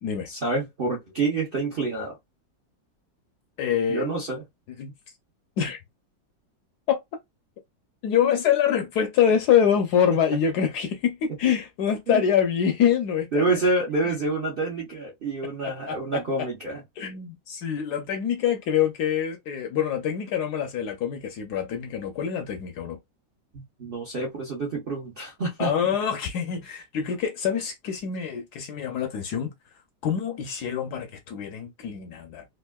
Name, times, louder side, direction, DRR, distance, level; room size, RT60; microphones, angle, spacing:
voice 1, 0.3-2.2 3.9-4.4 12.1-12.2 13.3-16.8 23.5-25.9, right 3 dB, 50° right, 0.6 m, -27 dB
voice 2, 3.6-4.0 4.8-4.9 5.6-5.8 6.9-7.0 8.0-13.4 15.6-16.5 17.0-23.0 25.6-29.5 30.0-32.5, left 8 dB, 70° left, 1.0 m, -25 dB
3.5 x 2.4 x 2.2 m
omnidirectional pair, 2.0 m